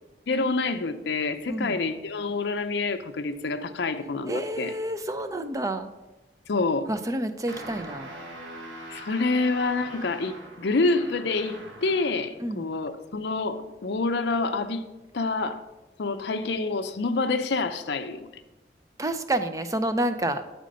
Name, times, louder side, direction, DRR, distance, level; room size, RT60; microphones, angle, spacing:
voice 1, 0.3-4.7 6.5-6.9 8.9-14.9 15.1-15.6 16.0-18.3, left 3 dB, 70° left, 8 dB, 0.6 m, -27 dB
voice 2, 1.5-1.8 4.3-5.9 6.9-8.1 12.4-12.7 19.0-20.4, right 1 dB, 20° right, 9 dB, 0.4 m, -29 dB
sound 1, 7.5-12.3, right 1 dB, 80° right, 1.1 m, -42 dB
7.5 x 5.1 x 5.1 m, 1.0 s
head